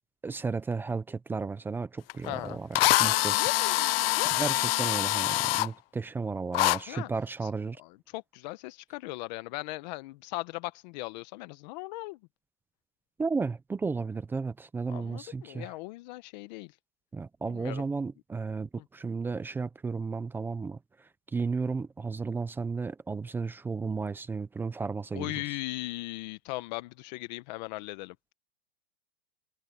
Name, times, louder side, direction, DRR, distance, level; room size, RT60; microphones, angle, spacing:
voice 1, 0.2-3.4 4.4-7.8 13.2-15.7 17.1-25.4, right 4 dB, 5° right, 0.5 m, -34 dB
Drill, 2.1-2.2 2.7-5.7 6.5-6.8, left 18 dB, 70° left, 0.5 m, -25 dB
voice 2, 2.3-2.6 3.0-4.5 6.5-7.1 7.4-7.5 7.8-12.2 14.9-16.7 17.5-17.8 25.1-28.1, left 20 dB, 45° left, 1.0 m, -38 dB
supercardioid pair, 155°, 31 cm